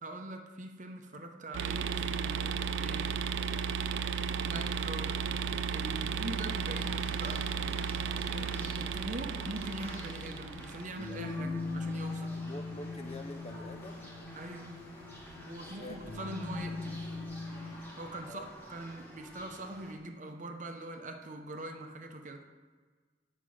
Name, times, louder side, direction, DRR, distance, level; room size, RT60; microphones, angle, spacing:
voice 1, 0.0-3.1 4.4-5.3 5.7-7.5 8.3-12.4 14.3-14.7 15.4-17.2 17.9-22.5, right 1 dB, 40° right, 4 dB, 0.7 m, -43 dB
sound 1, 1.5-11.0, right 6 dB, 85° right, 0.4 m, -34 dB
sound 2, 6.5-19.9, equal, 10° left, 1.4 m, -50 dB
sound 3, 7.3-17.8, left 3 dB, 80° left, 1.6 m, -42 dB
voice 2, 8.3-8.6 12.4-14.1 15.5-16.0 18.3-18.5, left 2 dB, 35° left, 7 dB, 0.4 m, -46 dB
7.7 x 5.1 x 6.3 m, 1.5 s
head